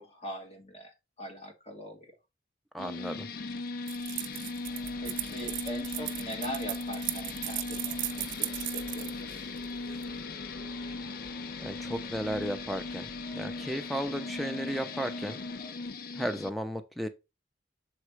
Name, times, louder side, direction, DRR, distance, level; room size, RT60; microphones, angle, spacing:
voice 1, 0.0-2.1 4.9-9.2, equal, 35° left, 1.6 m, -42 dB
voice 2, 2.7-3.3 11.6-15.4 16.1-17.1, equal, ahead, 0.6 m, -34 dB
sound 1, 2.8-16.5, left 3 dB, 50° left, 0.4 m, -38 dB
sound 2, 3.9-10.1, right 16 dB, 80° right, 0.5 m, -37 dB
sound 3, 4.6-15.7, left 1 dB, 85° left, 1.9 m, -50 dB
6.6 x 3.1 x 4.7 m
head